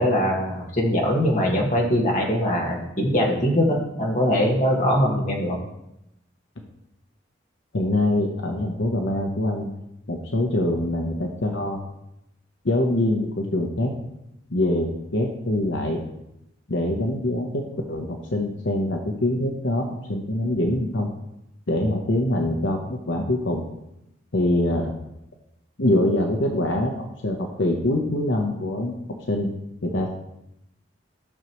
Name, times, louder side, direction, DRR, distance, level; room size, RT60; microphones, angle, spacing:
voice 1, 0.0-5.6, equal, 40° left, -1 dB, 1.6 m, -22 dB
voice 2, 7.7-9.7 10.1-11.8 12.6-13.9 14.5-16.0 16.7-21.1 21.7-23.6 24.3-24.9 25.8-28.9 29.3-29.5 29.8-30.1, left 1 dB, 70° left, 2 dB, 0.9 m, -24 dB
12.5 x 6.2 x 3.0 m, 0.86 s
head